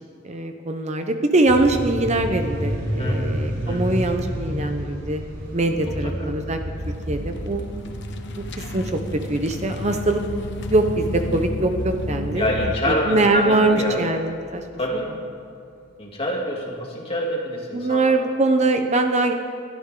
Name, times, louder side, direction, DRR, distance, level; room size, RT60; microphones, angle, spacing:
voice 1, 0.0-5.2 5.5-6.6 7.1-7.6 8.4-10.2 10.7-12.5 12.9-14.6 17.7-19.3, right 2 dB, 35° right, 6 dB, 0.8 m, -22 dB
sound 1, 1.5-14.6, equal, 60° right, 4.6 m, -31 dB
voice 2, 5.9-6.3 12.4-14.0 14.7-15.1 16.0-18.2, left 1 dB, 30° left, -2 dB, 2.7 m, -26 dB
sound 2, 6.8-12.8, left 1 dB, 60° left, 1.0 m, -32 dB
22.0 x 13.0 x 3.8 m, 2.3 s
head